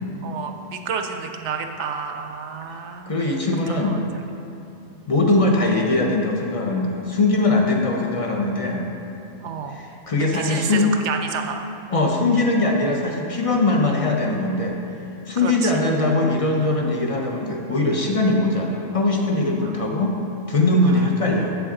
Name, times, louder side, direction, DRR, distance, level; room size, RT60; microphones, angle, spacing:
voice 1, 0.2-3.1 3.8-4.0 9.4-9.8 10.2-11.6 15.4-15.7 19.6-19.8 20.8-21.1, right 6 dB, 70° right, 5 dB, 0.8 m, -30 dB
voice 2, 2.7-4.0 5.1-8.8 9.7-10.9 11.9-14.8 15.3-20.2 20.5-21.5, left 2 dB, 45° left, 1 dB, 0.5 m, -21 dB
7.5 x 7.0 x 3.7 m, 3.0 s
omnidirectional pair, 1.3 m